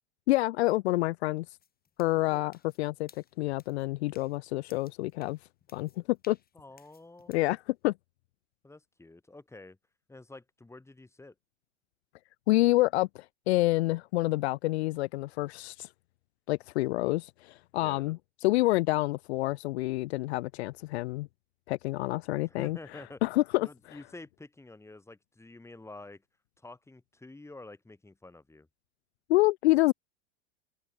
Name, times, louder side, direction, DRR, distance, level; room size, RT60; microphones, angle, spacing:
voice 1, 0.3-1.5 2.0-3.1 3.4-5.4 5.7-6.4 7.3-7.9 12.5-15.9 16.5-21.3 21.7-22.8 23.2-23.7 29.3-29.9, left 19 dB, 65° left, 0.5 m, -28 dB
sound 1, 1.6-7.5, left 7 dB, 25° left, 7.6 m, -62 dB
voice 2, 6.5-7.3 8.6-9.8 10.1-11.3 17.8-18.1 22.4-23.2 23.6-26.2 26.6-28.7, left 2 dB, 10° left, 2.7 m, -49 dB
hypercardioid pair, 85°, 35 cm